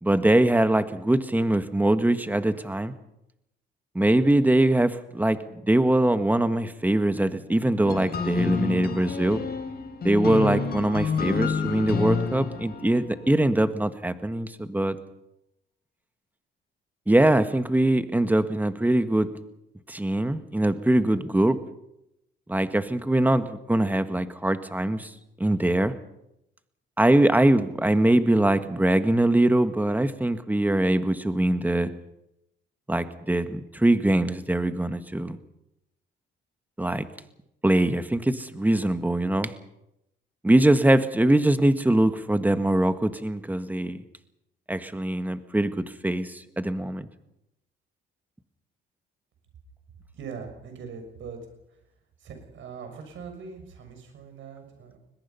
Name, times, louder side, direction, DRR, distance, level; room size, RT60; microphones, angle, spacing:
voice 1, 0.0-2.9 3.9-5.4 5.7-9.4 10.0-15.0 17.1-19.3 19.9-21.6 22.5-25.1 25.4-25.9 27.0-31.9 32.9-35.4 36.8-37.1 37.6-39.5 40.4-44.0 44.7-47.1, right 1 dB, 10° right, 10 dB, 1.6 m, -22 dB
sound 1, 7.8-13.3, left 5 dB, 50° left, 3.9 m, -29 dB
voice 2, 50.1-51.4 51.7-51.8 52.2-55.0, right 6 dB, 75° right, 5 dB, 6.6 m, -41 dB
22.5 x 20.5 x 5.7 m, 0.85 s
cardioid pair, 90°, 20 cm